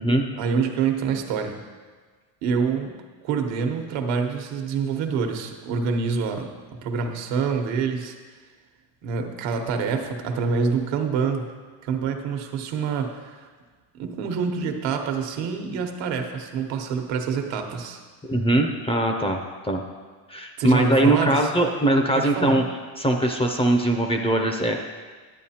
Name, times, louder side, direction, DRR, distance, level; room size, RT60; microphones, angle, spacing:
voice 1, 0.4-1.6 2.4-2.9 3.2-6.5 6.8-8.1 9.0-11.5 11.8-13.5 14.0-18.0 20.6-21.5 22.1-22.5, right 5 dB, 75° right, 4 dB, 1.1 m, -26 dB
voice 2, 18.2-19.4 19.6-19.8 20.3-22.6 23.0-24.8, right 1 dB, 15° left, 3 dB, 0.4 m, -21 dB
11.0 x 8.2 x 2.8 m, 1.4 s
cardioid pair, 140°, 44 cm